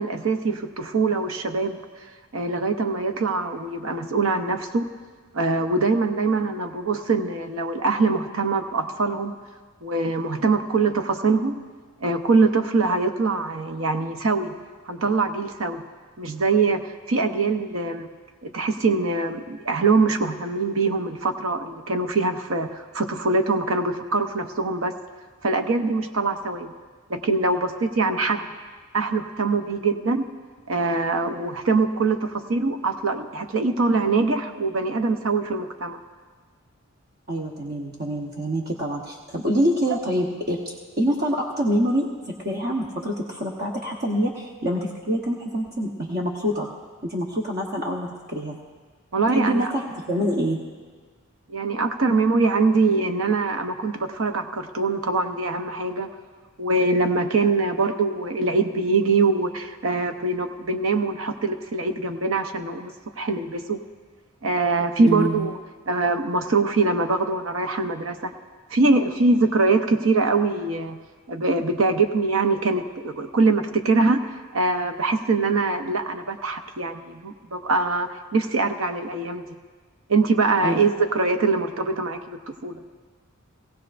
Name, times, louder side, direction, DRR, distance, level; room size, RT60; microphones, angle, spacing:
voice 1, 0.0-1.8 2.3-4.9 5.3-9.3 9.8-11.6 12.0-14.5 14.9-15.8 16.2-18.1 18.4-24.9 25.4-26.7 27.1-28.4 28.9-30.2 30.7-36.0 49.1-49.7 51.5-56.1 56.6-63.8 64.4-65.6 65.9-68.3 68.7-71.0 71.3-79.4 80.1-82.8, right 3 dB, 65° right, 7 dB, 0.8 m, -23 dB
voice 2, 37.3-42.1 42.4-46.7 47.0-48.6 49.3-50.6 64.8-65.5 80.6-80.7, equal, 45° right, -1 dB, 1.0 m, -26 dB
19.0 x 16.0 x 2.5 m, 1.5 s
head